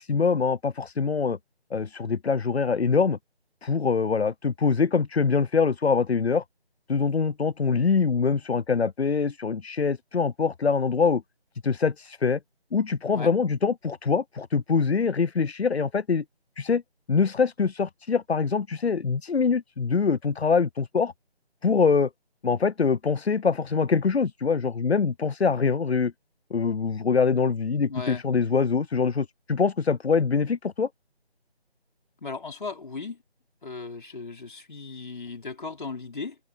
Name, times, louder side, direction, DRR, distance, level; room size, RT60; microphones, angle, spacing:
voice 1, 0.0-1.4 1.7-3.2 3.6-6.4 6.9-11.2 11.6-12.4 12.7-16.2 16.6-16.8 17.1-21.1 21.6-22.1 22.4-26.1 26.5-30.9, left 5 dB, 75° left, 0.7 m, -24 dB
voice 2, 27.9-28.2 32.2-33.2 33.6-36.4, left 4 dB, 50° left, 4.7 m, -36 dB
figure-of-eight pair, 160°, 32 cm